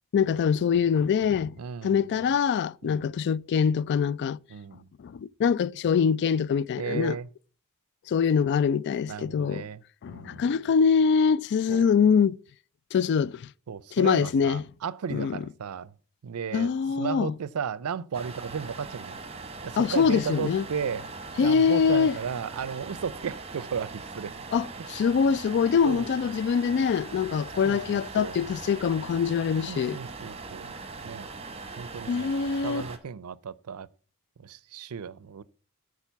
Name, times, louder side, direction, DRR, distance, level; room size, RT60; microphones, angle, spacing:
voice 1, 0.1-1.5 1.8-4.4 5.0-7.2 8.1-9.6 10.0-12.4 12.9-13.5 14.0-14.6 15.1-15.4 16.5-17.3 19.8-20.6 21.4-22.2 24.5-30.0 32.1-32.8, left 6 dB, 50° left, 0.3 m, -24 dB
voice 2, 1.6-2.1 2.8-3.1 4.5-4.9 6.8-7.3 9.1-9.8 10.1-10.5 11.7-11.9 13.7-15.9 16.2-16.7 17.0-19.2 19.6-21.0 21.4-24.3 25.8-26.1 27.6-28.4 29.7-30.8 31.0-31.3 31.8-32.3 32.6-33.9 34.4-35.4, right 6 dB, 80° right, 0.5 m, -35 dB
sound 1, 18.1-33.0, right 3 dB, 30° right, 1.1 m, -41 dB
8.9 x 4.8 x 7.0 m
head